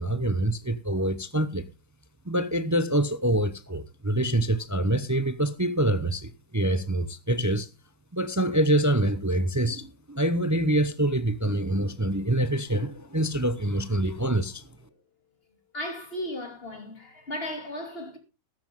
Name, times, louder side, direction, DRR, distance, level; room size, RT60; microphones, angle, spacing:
voice 1, 0.0-1.6 2.3-7.7 8.1-14.6, right 1 dB, 25° right, 0.4 m, -25 dB
voice 2, 15.7-18.2, left 1 dB, 35° left, 3.0 m, -35 dB
14.0 x 12.5 x 3.7 m
omnidirectional pair, 1.8 m